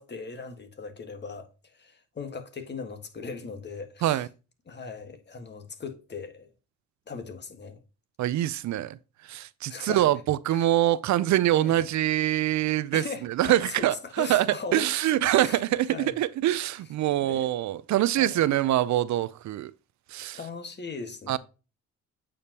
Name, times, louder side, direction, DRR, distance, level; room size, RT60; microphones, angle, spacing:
voice 1, 0.0-4.3 4.7-6.5 7.1-7.8 9.7-10.1 10.5-10.7 11.5-11.8 12.9-15.0 15.3-15.6 15.9-16.2 17.2-17.5 18.2-18.5 20.3-21.4, left 4 dB, 35° left, 1.6 m, -39 dB
voice 2, 8.2-9.0 9.2-14.5 14.7-19.7 20.1-20.4 21.3-21.4, right 13 dB, 70° right, 0.5 m, -24 dB
8.4 x 5.0 x 2.9 m
cardioid pair, 90°, 30 cm